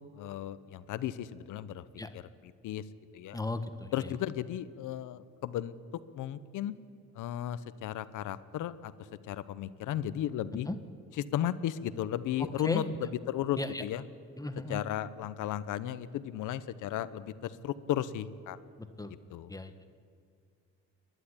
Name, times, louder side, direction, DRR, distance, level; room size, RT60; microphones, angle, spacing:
voice 1, 0.0-1.8 2.1-2.8 3.1-3.4 3.9-5.7 6.1-6.7 7.2-8.9 9.3-10.7 11.1-14.0 14.7-18.6 19.3-19.5, left 11 dB, 85° left, 14 dB, 0.9 m, -35 dB
voice 2, 3.3-3.9 10.7-10.8 12.6-12.9 13.6-13.8 14.4-14.8 19.0-19.1 19.5-19.7, left 2 dB, 10° left, 8 dB, 1.5 m, -35 dB
28.5 x 11.5 x 10.0 m, 2.3 s
cardioid pair, 90°, 30 cm